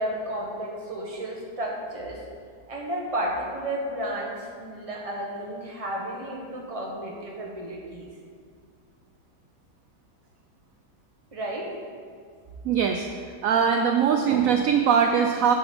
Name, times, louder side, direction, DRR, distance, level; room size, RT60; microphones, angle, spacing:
voice 1, 0.0-2.2 2.7-8.1 11.3-11.7, right 1 dB, 20° right, -2 dB, 1.1 m, -32 dB
voice 2, 12.6-13.1 13.4-15.5, right 7 dB, 70° right, 4 dB, 0.8 m, -21 dB
9.7 x 4.0 x 6.9 m, 2.1 s
omnidirectional pair, 1.9 m